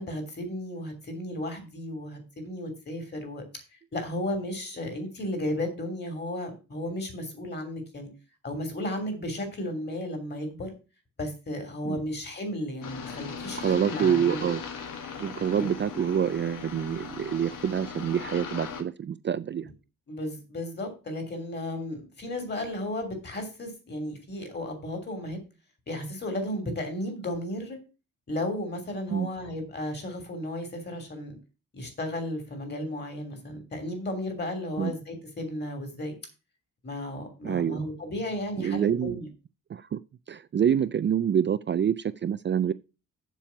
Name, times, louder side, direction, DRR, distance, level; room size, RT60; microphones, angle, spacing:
voice 1, 0.0-3.6 3.9-8.1 8.4-10.7 11.2-14.4 20.1-25.4 25.9-27.8 28.3-31.4 31.7-36.1 36.8-39.3, left 1 dB, 30° left, 3.1 m, -34 dB
sound 1, 12.8-18.8, left 6 dB, 80° left, 2.0 m, -39 dB
voice 2, 13.6-14.6 15.2-19.7 29.1-29.3 34.8-35.0 37.4-37.8 38.6-39.2 39.7-40.0 40.3-42.7, right 8 dB, 35° right, 0.4 m, -26 dB
7.4 x 6.9 x 5.8 m
wide cardioid pair, 165°, 32 cm